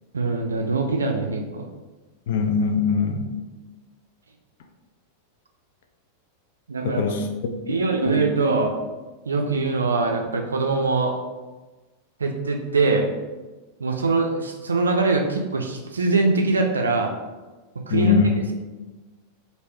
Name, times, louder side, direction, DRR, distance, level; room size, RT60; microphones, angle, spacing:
voice 1, 0.1-1.7 6.7-7.0 7.7-8.7 9.3-11.1 12.2-13.1 13.8-17.1 17.9-18.2, right 3 dB, 75° right, 3 dB, 0.3 m, -22 dB
voice 2, 2.3-3.3 6.8-7.2 7.7-8.2 17.9-18.4, left 5 dB, 55° left, 5 dB, 0.4 m, -22 dB
3.2 x 2.6 x 3.1 m, 1.2 s
figure-of-eight pair, 90°, 0 cm